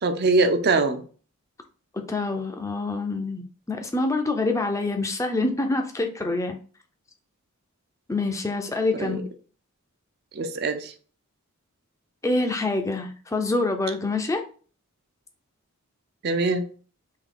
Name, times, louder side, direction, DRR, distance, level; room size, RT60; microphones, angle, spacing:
voice 1, 0.0-1.0 8.9-9.2 10.3-10.9 16.2-16.6, right 3 dB, 50° right, 0.5 m, -23 dB
voice 2, 1.9-6.6 8.1-9.2 12.2-14.4, left 2 dB, 15° left, 0.4 m, -26 dB
3.7 x 2.8 x 3.7 m
head